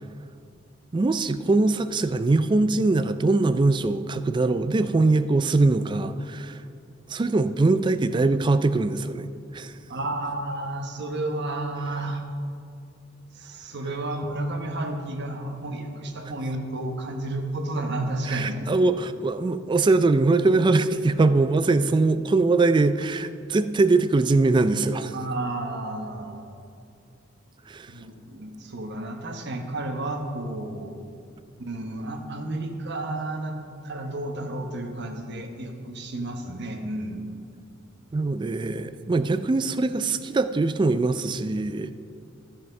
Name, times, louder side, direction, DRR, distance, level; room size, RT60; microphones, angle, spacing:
voice 1, 0.9-6.6 7.1-9.3 9.5-9.8 18.3-25.2 27.7-27.9 38.1-41.9, right 3 dB, 25° right, 12 dB, 0.3 m, -22 dB
voice 2, 9.9-12.2 13.3-18.6 25.1-26.4 27.9-30.9 31.6-33.6 33.8-37.3, right 2 dB, 60° right, 4 dB, 1.1 m, -31 dB
13.5 x 5.9 x 5.3 m, 2.3 s
head